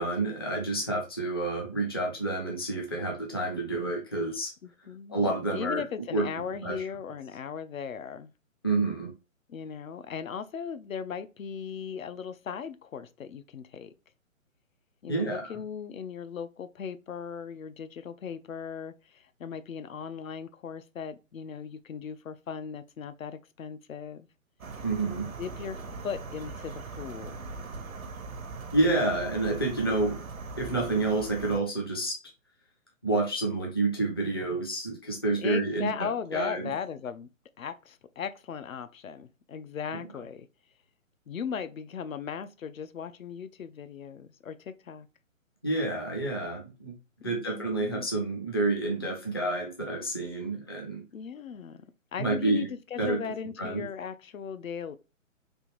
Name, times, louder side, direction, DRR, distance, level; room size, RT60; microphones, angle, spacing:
voice 1, 0.0-4.5 5.1-5.8 6.1-6.2 6.6-6.9 8.6-9.1 15.1-15.5 24.8-25.3 28.7-30.2 30.6-32.2 33.0-36.7 45.6-46.9 47.2-51.0 52.2-52.7 53.0-53.3 53.6-53.8, right 2 dB, 20° left, 0.4 m, -29 dB
voice 2, 4.6-8.3 9.5-13.9 15.0-24.3 25.4-27.4 35.4-37.3 37.6-40.5 41.3-45.1 47.2-48.1 51.1-51.8 52.1-55.0, left 7 dB, 75° left, 0.5 m, -38 dB
sound 1, 24.6-31.6, right 3 dB, 85° right, 0.7 m, -40 dB
3.3 x 2.6 x 3.0 m
figure-of-eight pair, 140°, 40 cm